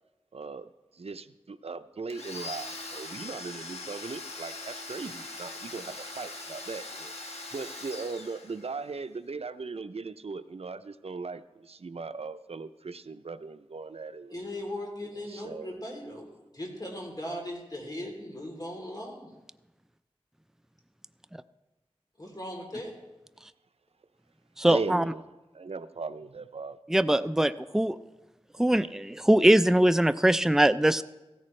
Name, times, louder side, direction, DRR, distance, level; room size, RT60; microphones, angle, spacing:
voice 1, 0.3-0.7 0.9-14.4 15.3-15.8 24.7-26.8, right 4 dB, 75° right, 11 dB, 0.5 m, -38 dB
Domestic sounds home sounds, 2.1-8.9, left 2 dB, 85° left, 1.3 m, -41 dB
voice 2, 14.3-16.3 16.5-19.3 22.2-22.9, left 1 dB, 40° left, 0 dB, 3.2 m, -38 dB
voice 3, 24.6-25.0 26.9-28.0 28.6-31.0, right 1 dB, 5° right, 13 dB, 0.4 m, -22 dB
15.5 x 14.0 x 3.2 m, 1.1 s
wide cardioid pair, 50°, 10 cm